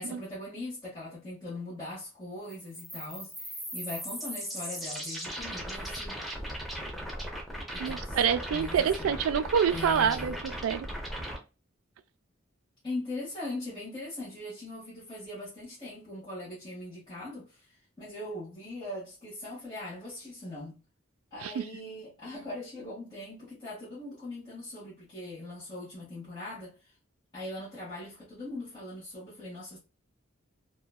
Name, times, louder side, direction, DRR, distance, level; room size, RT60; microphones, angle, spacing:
voice 1, 0.0-6.2 7.7-8.2 8.5-9.2 9.7-10.3 12.8-20.8 21.3-26.9 27.3-29.8, left 2 dB, 20° left, 1.1 m, -41 dB
sound 1, 2.5-11.4, equal, ahead, 0.5 m, -38 dB
voice 2, 7.8-10.9 21.4-21.6, right 7 dB, 80° right, 0.3 m, -27 dB
2.9 x 2.2 x 2.2 m
head